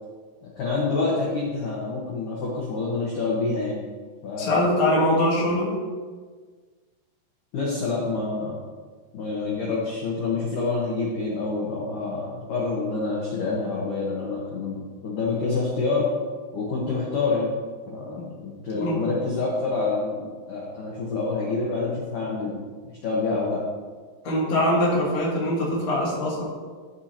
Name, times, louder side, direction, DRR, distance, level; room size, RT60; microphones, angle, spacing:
voice 1, 0.6-3.8 4.2-4.6 7.5-8.6 9.1-16.1 16.5-17.5 17.9-22.6 22.9-23.6, left 3 dB, 85° left, -5 dB, 1.8 m, -27 dB
voice 2, 4.4-5.7 18.2-18.3 18.7-19.1 24.2-26.4, left 1 dB, 50° left, -5 dB, 1.5 m, -23 dB
13.0 x 5.6 x 2.8 m, 1.5 s
omnidirectional pair, 5.6 m